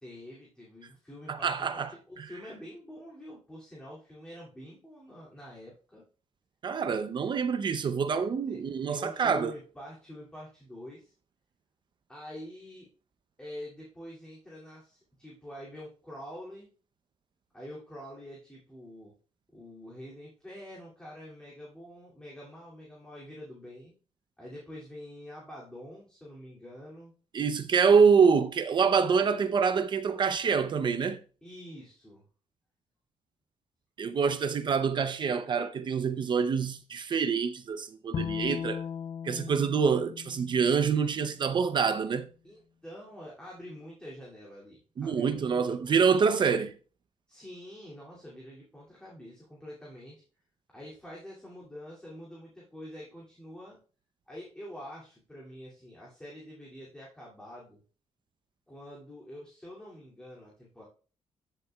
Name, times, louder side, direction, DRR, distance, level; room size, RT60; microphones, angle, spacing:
voice 1, 0.0-6.0 8.5-8.6 8.9-11.1 12.1-12.9 13.4-16.7 17.5-19.1 19.5-23.9 24.4-27.1 31.4-32.2 42.4-45.9 47.3-50.2 50.7-53.8 54.3-57.8 58.7-60.8, equal, 5° left, 2.5 m, -46 dB
voice 2, 1.3-1.9 2.2-2.3 6.6-9.5 27.3-31.2 34.0-38.8 39.2-42.3 45.0-46.7, right 6 dB, 40° right, 0.6 m, -26 dB
Bowed string instrument, 38.1-41.4, left 8 dB, 50° left, 0.4 m, -37 dB
13.5 x 6.8 x 2.3 m
cardioid pair, 150°, 12 cm